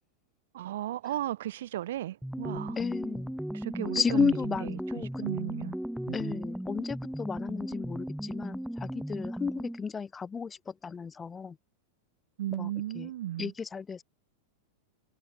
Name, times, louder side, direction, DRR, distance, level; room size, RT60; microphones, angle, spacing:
voice 1, 0.5-2.8 3.5-4.4 4.6-5.8 6.1-6.4 12.4-13.5, right 13 dB, 60° right, 0.7 m, -35 dB
sound 1, 2.2-9.9, equal, ahead, 0.3 m, -36 dB
voice 2, 2.8-3.3 3.8-5.2 6.1-11.6 12.5-13.1 13.4-14.0, left 5 dB, 15° left, 1.2 m, -33 dB
figure-of-eight pair, 90°, 0 cm